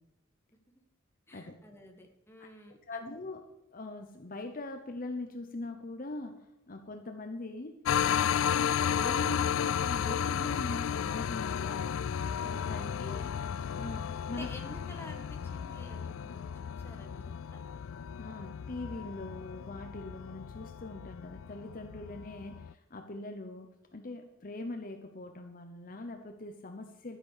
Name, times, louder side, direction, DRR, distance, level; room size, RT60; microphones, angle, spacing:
voice 1, 1.3-3.0 13.1-13.4 14.3-17.6, left 1 dB, 10° left, 2 dB, 1.8 m, -51 dB
voice 2, 2.9-7.8 8.1-11.9 12.4-13.3 13.7-14.5 18.2-27.2, left 2 dB, 40° left, 6 dB, 0.9 m, -42 dB
sound 1, 7.8-22.7, left 8 dB, 80° left, 0.4 m, -33 dB
11.5 x 10.0 x 6.6 m, 0.86 s
head